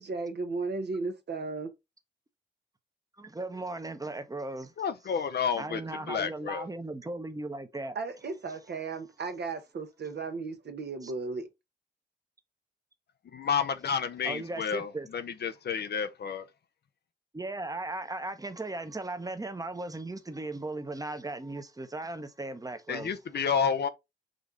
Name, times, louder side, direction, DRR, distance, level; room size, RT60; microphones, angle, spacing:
voice 1, 0.0-1.7 7.9-11.5, right 4 dB, 65° right, 1.0 m, -35 dB
voice 2, 3.2-4.7 5.6-8.0 11.0-11.1 14.2-15.1 17.3-23.5, right 2 dB, 20° right, 0.8 m, -37 dB
voice 3, 4.8-5.8 6.1-6.7 13.3-16.5 22.9-23.9, left 6 dB, 60° left, 0.6 m, -30 dB
5.1 x 2.4 x 3.8 m
supercardioid pair, 40°, 19 cm